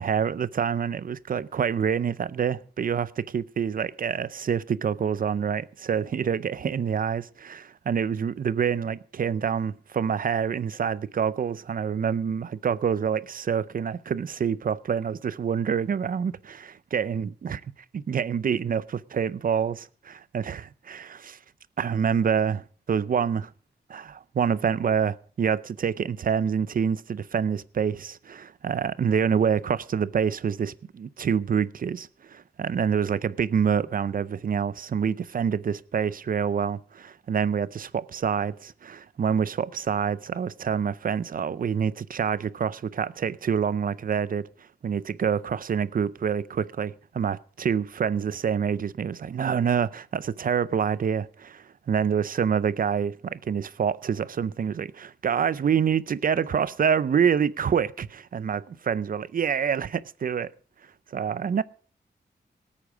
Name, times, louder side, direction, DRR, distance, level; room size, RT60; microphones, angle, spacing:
voice 1, 0.0-17.6 17.9-21.4 21.8-23.5 23.9-44.5 44.8-60.5 61.1-61.6, right 7 dB, 55° right, 0.6 m, -27 dB
18.5 x 8.5 x 5.0 m
wide cardioid pair, 125°, 17 cm